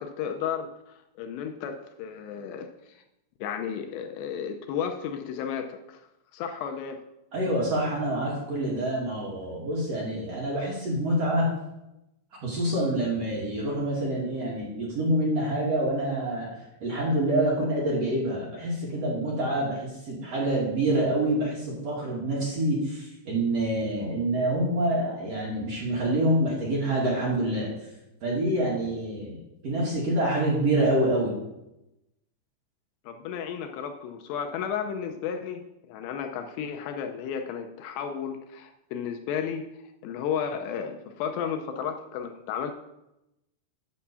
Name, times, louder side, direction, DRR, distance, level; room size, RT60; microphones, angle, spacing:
voice 1, 0.0-3.0 3.4-6.0 6.3-7.0 33.1-39.7 40.0-42.7, left 7 dB, 80° left, 6 dB, 2.6 m, -33 dB
voice 2, 7.3-11.5 12.4-16.5 16.8-27.7 28.2-29.4 29.6-31.3, right 1 dB, 45° right, -5 dB, 2.4 m, -26 dB
8.5 x 5.9 x 6.8 m, 0.90 s
omnidirectional pair, 5.1 m